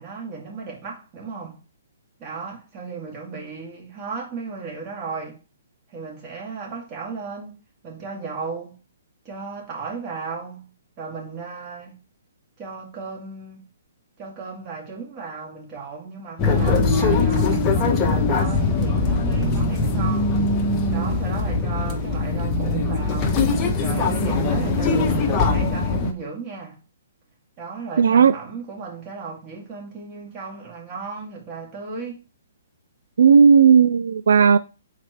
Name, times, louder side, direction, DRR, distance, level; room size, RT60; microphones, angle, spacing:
voice 1, 0.0-1.6 2.2-5.4 5.9-7.6 7.8-8.7 9.2-10.7 11.0-12.0 12.6-13.6 14.2-20.4 20.9-23.4 23.8-26.8 27.6-32.2, right 4 dB, 30° right, 2.2 m, -35 dB
sound 1, 16.4-26.1, left 3 dB, 20° left, 0.9 m, -21 dB
voice 2, 28.0-28.3 33.2-34.6, right 6 dB, 75° right, 0.3 m, -14 dB
4.9 x 4.3 x 4.6 m
hypercardioid pair, 150°, 0 cm